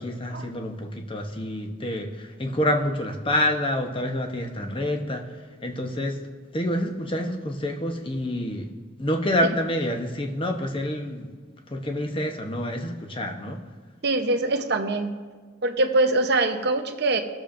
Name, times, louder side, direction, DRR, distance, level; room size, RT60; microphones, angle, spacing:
voice 1, 0.0-5.3 5.6-6.2 6.5-8.7 9.0-11.3 11.7-13.6, left 1 dB, 25° left, 3 dB, 0.9 m, -27 dB
voice 2, 14.0-15.1 15.6-17.2, right 2 dB, 60° right, 6 dB, 0.8 m, -23 dB
20.5 x 7.0 x 2.6 m, 1.5 s
head